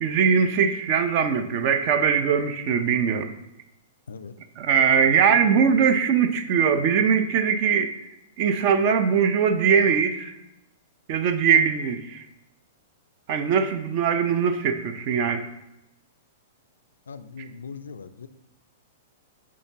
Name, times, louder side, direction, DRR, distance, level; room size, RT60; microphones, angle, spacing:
voice 1, 0.0-3.3 4.6-7.9 8.4-10.3 11.1-12.2 13.3-15.5, right 7 dB, 45° right, 9 dB, 0.6 m, -21 dB
voice 2, 17.1-18.3, left 5 dB, 75° left, 12 dB, 0.3 m, -40 dB
9.4 x 3.7 x 2.9 m, 0.87 s
figure-of-eight pair, 105°, 0 cm